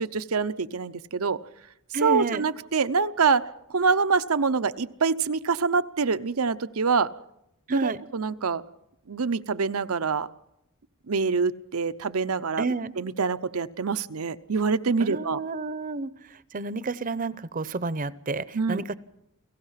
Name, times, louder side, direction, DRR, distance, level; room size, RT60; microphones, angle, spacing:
voice 1, 0.1-1.4 2.0-7.1 7.8-8.6 9.1-10.3 11.1-15.4 18.5-18.8, right 5 dB, 85° right, 12 dB, 0.8 m, -25 dB
voice 2, 1.9-2.5 7.7-8.0 12.6-12.9 15.0-18.9, right 3 dB, 40° right, 16 dB, 0.7 m, -30 dB
29.5 x 18.0 x 5.8 m, 0.85 s
head